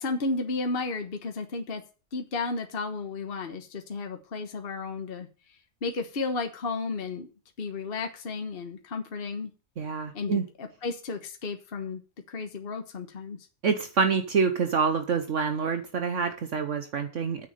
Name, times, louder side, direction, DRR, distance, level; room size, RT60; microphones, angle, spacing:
voice 1, 0.0-1.8 2.1-5.3 5.8-7.3 7.6-9.5 10.1-12.0 12.3-13.4, left 3 dB, 45° left, 5 dB, 1.4 m, -33 dB
voice 2, 9.8-10.4 13.6-17.5, right 5 dB, 65° right, 8 dB, 1.3 m, -27 dB
9.3 x 7.2 x 6.6 m, 0.35 s
omnidirectional pair, 1.4 m